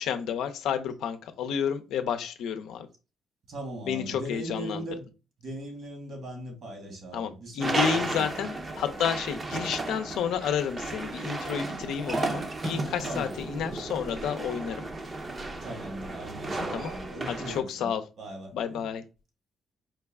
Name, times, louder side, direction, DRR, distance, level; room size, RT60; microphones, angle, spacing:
voice 1, 0.0-2.9 3.9-4.9 7.1-14.9 16.6-16.9 17.3-18.0 18.5-19.0, left 8 dB, 85° left, 0.5 m, -31 dB
voice 2, 3.5-5.0 5.4-8.3 13.0-13.3 15.6-17.9 18.2-18.8, right 1 dB, 60° right, 1.8 m, -39 dB
sound 1, 7.6-17.6, right 2 dB, 30° right, 0.7 m, -34 dB
4.6 x 2.3 x 3.5 m
cardioid pair, 90°, 0 cm